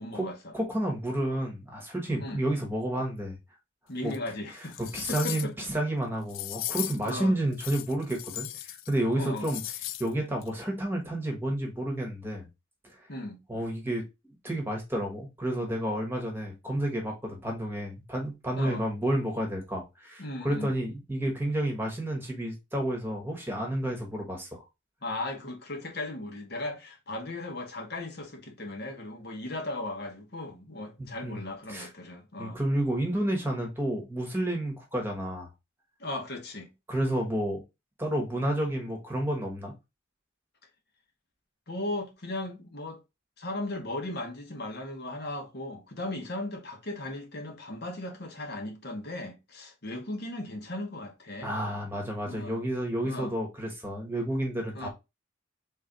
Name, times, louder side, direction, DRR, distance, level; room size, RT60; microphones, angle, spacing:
voice 1, 0.0-0.5 2.2-2.4 3.9-4.8 5.1-5.5 7.0-7.3 9.2-9.5 13.1-13.4 18.6-18.9 20.2-20.8 25.0-32.6 36.0-36.7 41.7-43.0 43.4-51.6 52.2-52.6 53.0-53.4 54.7-54.9, left 2 dB, 55° left, 1.1 m, -37 dB
voice 2, 0.5-3.4 4.0-4.1 4.5-9.6 10.0-12.5 13.5-14.0 14.4-24.6 31.0-31.9 32.4-35.5 36.9-37.6 38.0-39.7 51.4-54.9, right 1 dB, 10° right, 1.2 m, -30 dB
sound 1, 4.1-4.2 4.6-5.6 6.3-7.1 7.5-8.9 9.2-10.1 10.4-10.5, left 14 dB, 80° left, 0.3 m, -37 dB
3.7 x 3.3 x 3.8 m
head